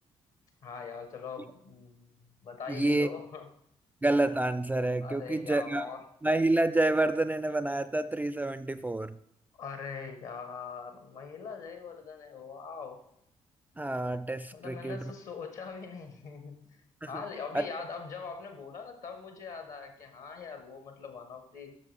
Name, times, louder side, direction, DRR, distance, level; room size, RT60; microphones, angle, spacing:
voice 1, 0.6-2.1 2.4-3.5 5.0-6.1 9.6-13.0 14.5-16.7 17.1-21.7, left 5 dB, 60° left, 5 dB, 1.4 m, -42 dB
voice 2, 2.7-3.1 4.0-5.9 6.2-9.2 13.8-15.0 17.0-17.2 17.5-17.7, right 2 dB, 10° right, 14 dB, 0.3 m, -28 dB
8.3 x 6.4 x 3.4 m, 0.73 s
figure-of-eight pair, 40°, 15 cm